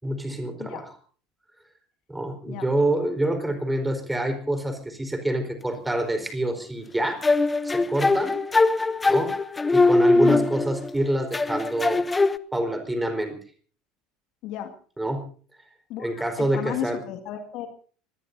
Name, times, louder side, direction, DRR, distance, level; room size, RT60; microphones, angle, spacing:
voice 1, 0.0-0.9 2.1-7.2 7.6-8.4 9.1-9.3 9.7-12.0 12.5-13.4 15.0-15.2 16.0-17.0, right 1 dB, 10° right, 7 dB, 4.4 m, -27 dB
sound 1, 7.2-10.9 11.3-12.4, left 2 dB, 15° left, 0.9 m, -21 dB
voice 2, 10.2-10.5 14.4-14.7 15.9-17.7, left 12 dB, 55° left, 7 dB, 2.1 m, -33 dB
25.5 x 20.0 x 2.7 m, 0.43 s
figure-of-eight pair, 70°, 0 cm